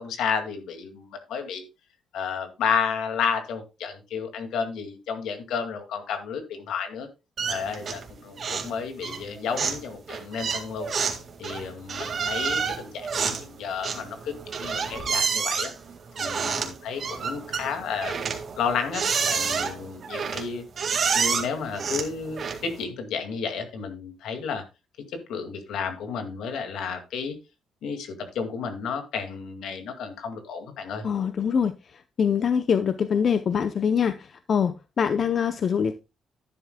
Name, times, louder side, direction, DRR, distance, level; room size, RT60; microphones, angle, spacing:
voice 1, 0.0-1.6 2.1-7.1 7.5-10.9 11.4-14.3 14.6-15.7 16.2-18.2 18.6-20.6 21.1-24.6 25.0-27.4 27.8-31.1, left 6 dB, 80° left, 2.1 m, -32 dB
sound 1, 7.4-8.1 8.4-8.7 9.0-22.8, right 6 dB, 50° right, 1.9 m, -29 dB
voice 2, 31.0-31.7 32.2-35.9, left 7 dB, 50° left, 0.6 m, -24 dB
10.5 x 10.5 x 2.2 m
cardioid pair, 90°, 0 cm